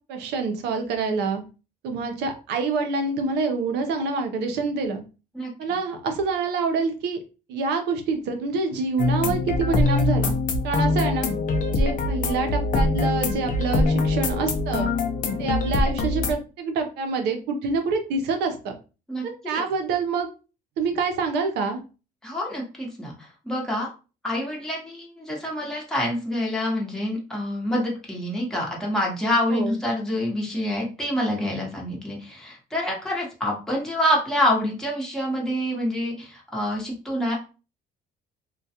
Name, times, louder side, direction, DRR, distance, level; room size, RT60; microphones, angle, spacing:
voice 1, 0.1-1.4 1.8-5.0 5.6-7.2 7.5-10.4 10.6-11.3 11.7-14.9 15.4-18.7 19.2-20.3 20.8-21.8 29.5-29.8, right 4 dB, 80° right, 5 dB, 0.6 m, -26 dB
sound 1, 9.0-16.3, left 2 dB, 50° left, 0.5 m, -23 dB
voice 2, 19.1-19.6 22.2-23.9 24.2-37.4, left 1 dB, 5° left, -3 dB, 0.9 m, -27 dB
2.3 x 2.2 x 2.7 m, 0.32 s
cardioid pair, 110°, 17 cm